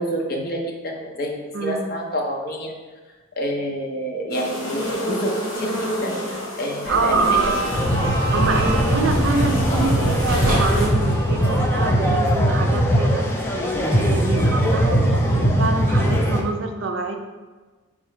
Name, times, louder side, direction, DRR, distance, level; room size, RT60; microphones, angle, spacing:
voice 1, 0.0-2.7 3.4-7.4 14.2-14.5, equal, 45° left, -1 dB, 0.7 m, -28 dB
voice 2, 1.5-1.9 6.9-7.5 8.3-13.3 13.9-17.2, right 3 dB, 60° right, 3 dB, 0.5 m, -25 dB
sound 1, 4.3-10.9, equal, 80° left, 1.1 m, -29 dB
sound 2, 6.8-12.3, right 1 dB, 40° right, 1.3 m, -27 dB
sound 3, 7.7-16.4, equal, 10° left, 0.3 m, -20 dB
3.7 x 2.9 x 4.3 m, 1.3 s
head